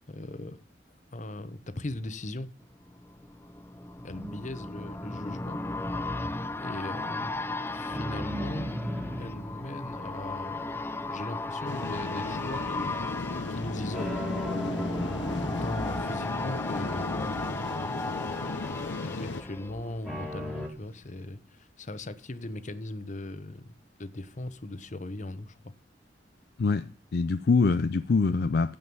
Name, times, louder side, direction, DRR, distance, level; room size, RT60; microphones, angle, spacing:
voice 1, 0.1-0.6 1.1-2.5 4.0-5.6 6.6-7.4 7.7-8.7 9.2-13.0 13.5-14.2 15.4-17.7 18.4-18.6 19.0-25.7, left 1 dB, 45° left, 1.0 m, -39 dB
sound 1, 2.7-20.5 20.9-21.0, left 2 dB, 15° left, 0.6 m, -36 dB
sound 2, 4.1-5.3 7.9-10.6 13.9-16.6 20.0-20.7, equal, ahead, 2.3 m, -36 dB
sound 3, 11.7-19.4, left 3 dB, 80° left, 0.8 m, -36 dB
voice 2, 26.6-28.8, left 4 dB, 60° left, 0.5 m, -24 dB
15.5 x 5.2 x 5.4 m
head